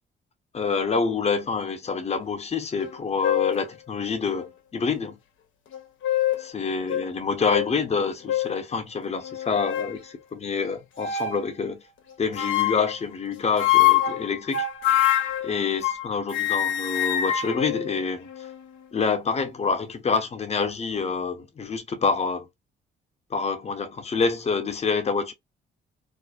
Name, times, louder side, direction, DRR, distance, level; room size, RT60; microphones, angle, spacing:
voice 1, 0.5-5.2 6.5-11.8 12.2-14.7 15.4-18.3 18.9-22.5 23.3-25.3, left 5 dB, 35° left, 0.7 m, -27 dB
sound 1, 2.8-2.9 3.2-3.6 4.4-4.5 5.7-6.5 6.9-7.1 7.5-7.7 8.3-8.6 9.2-10.0 11.0-11.4 12.4-13.0 13.6-16.1 16.3-18.6, left 11 dB, 75° left, 0.7 m, -24 dB
2.5 x 2.1 x 2.4 m
cardioid pair, 90°, 20 cm